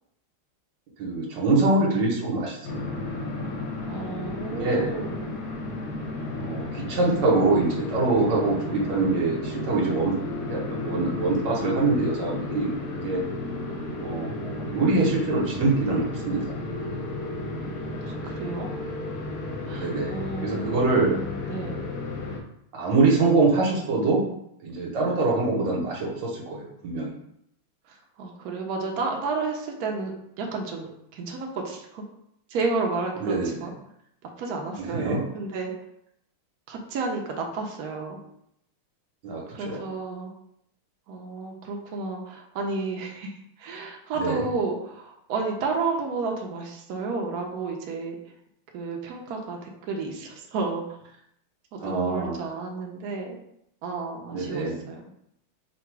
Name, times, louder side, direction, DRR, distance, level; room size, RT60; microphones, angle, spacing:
voice 1, 1.0-2.8 4.5-4.9 6.4-10.2 10.5-13.2 14.0-16.5 19.8-20.2 20.4-21.2 22.7-24.3 24.6-27.1 33.2-33.5 34.8-35.2 39.2-39.9 44.2-44.4 51.8-52.4 54.3-54.8, right 3 dB, 60° right, -2 dB, 1.5 m, -24 dB
sound 1, 2.6-22.4, left 2 dB, 65° left, 0.9 m, -33 dB
voice 2, 3.9-5.4 18.0-18.7 19.6-21.8 27.9-32.0 32.5-33.7 34.4-35.7 36.7-38.2 39.5-40.3 41.1-48.2 48.7-50.8 51.7-53.4 53.8-55.1, right 4 dB, 80° right, 1 dB, 0.8 m, -32 dB
3.8 x 2.3 x 4.5 m, 0.75 s
omnidirectional pair, 2.4 m